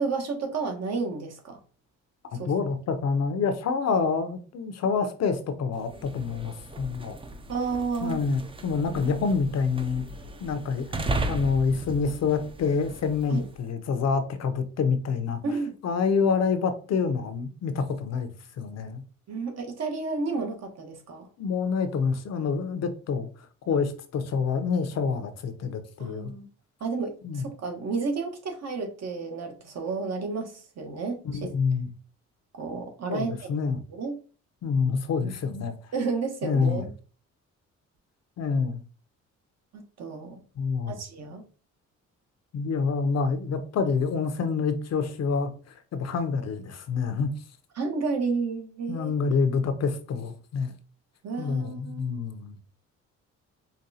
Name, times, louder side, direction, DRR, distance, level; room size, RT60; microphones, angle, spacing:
voice 1, 0.0-1.6 2.3-2.5 7.5-8.2 8.9-9.0 13.3-13.4 15.4-15.7 19.3-21.3 26.0-26.5 26.8-31.2 32.5-33.5 33.9-34.2 35.2-35.3 35.9-36.9 39.7-40.4 40.9-41.4 47.8-49.1 51.2-52.1, right 4 dB, 60° right, 1.1 m, -31 dB
voice 2, 2.3-7.2 8.0-10.0 10.4-10.9 11.2-15.4 15.8-18.3 18.6-19.0 21.4-23.3 23.7-26.3 27.2-27.4 31.2-31.9 33.1-33.8 34.6-35.7 36.4-36.9 38.4-38.8 40.6-41.0 42.5-47.3 48.9-50.7 51.4-52.6, left 5 dB, 60° left, 0.7 m, -27 dB
sound 1, 5.8-13.6, right 2 dB, 20° right, 0.5 m, -36 dB
5.1 x 2.3 x 2.7 m
cardioid pair, 90°, 30 cm